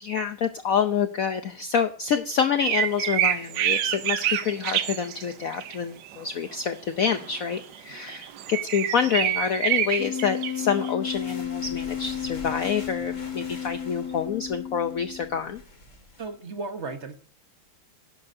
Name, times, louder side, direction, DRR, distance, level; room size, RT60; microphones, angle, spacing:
voice 1, 0.0-15.6, left 7 dB, 80° left, 0.7 m, -27 dB
sound 1, 2.6-5.8 6.1-6.2 7.1-10.9, right 11 dB, 65° right, 1.3 m, -27 dB
Wind instrument woodwind instrument, 10.0-15.4, left 9 dB, 60° left, 3.8 m, -33 dB
sound 2, 11.0-16.3, left 2 dB, 35° left, 2.3 m, -46 dB
voice 2, 16.2-17.2, right 3 dB, 40° right, 1.1 m, -34 dB
11.5 x 10.5 x 2.7 m
omnidirectional pair, 2.4 m